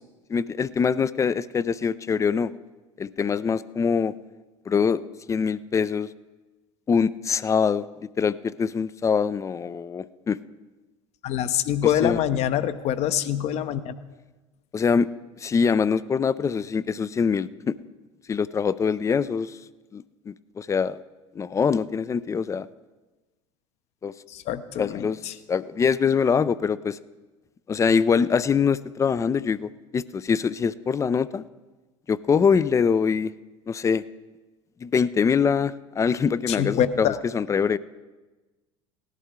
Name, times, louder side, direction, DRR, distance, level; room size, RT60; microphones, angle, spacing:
voice 1, 0.3-2.5 3.0-4.1 4.7-5.0 5.3-6.1 6.9-10.4 11.8-12.2 14.7-15.1 15.4-17.8 18.3-19.6 19.9-21.0 21.4-22.7 24.0-24.1 24.8-25.2 25.5-27.0 27.7-31.4 32.1-33.3 33.7-34.1 34.8-37.8, left 6 dB, 20° left, 18 dB, 0.4 m, -24 dB
voice 2, 11.2-13.9 24.3-25.3 36.5-37.2, left 10 dB, 45° left, 13 dB, 0.8 m, -25 dB
18.0 x 11.5 x 3.7 m, 1.2 s
figure-of-eight pair, 75°, 15 cm